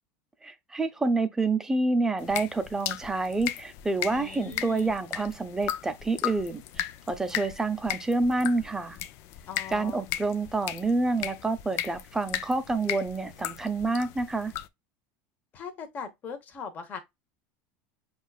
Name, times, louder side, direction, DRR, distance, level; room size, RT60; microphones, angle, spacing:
voice 1, 0.4-9.0 9.7-14.5, right 3 dB, 10° right, 0.6 m, -28 dB
sound 1, 2.2-14.7, left 12 dB, 55° left, 0.5 m, -37 dB
voice 2, 4.1-4.9 7.3-7.4 9.5-10.0 15.5-17.0, left 6 dB, 30° left, 1.1 m, -40 dB
7.3 x 2.4 x 2.3 m
supercardioid pair, 150°, 6 cm